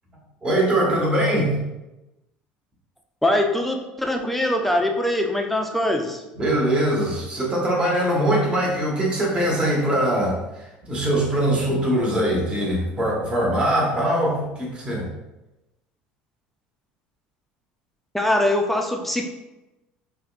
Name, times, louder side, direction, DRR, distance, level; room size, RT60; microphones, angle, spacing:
voice 1, 0.4-1.6 6.3-15.1, right 1 dB, 25° right, -2 dB, 1.2 m, -22 dB
voice 2, 3.2-6.2 18.1-19.3, left 1 dB, 5° left, 3 dB, 0.5 m, -22 dB
5.0 x 2.2 x 2.4 m, 1.0 s
supercardioid pair, 90°, 4 cm